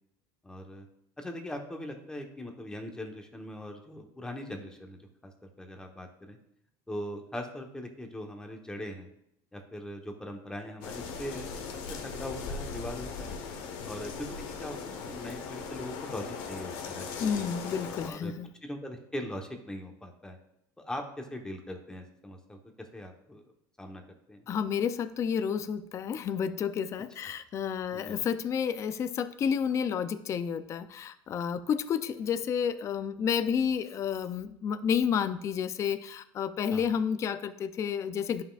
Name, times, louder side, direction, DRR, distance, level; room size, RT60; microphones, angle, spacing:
voice 1, 0.4-0.9 1.2-6.4 6.9-9.1 9.5-11.7 12.0-13.4 13.8-17.5 18.0-18.3 18.6-20.4 20.8-23.4 23.8-24.0 24.3-24.5 27.9-28.2 36.7-37.0, left 1 dB, 10° left, 3 dB, 1.0 m, -41 dB
sound 1, 10.8-18.1, left 5 dB, 65° left, 1.2 m, -39 dB
voice 2, 17.2-18.5 24.5-38.4, left 7 dB, 30° left, 11 dB, 0.4 m, -30 dB
11.0 x 5.7 x 2.4 m, 0.77 s
supercardioid pair, 130°, 10 cm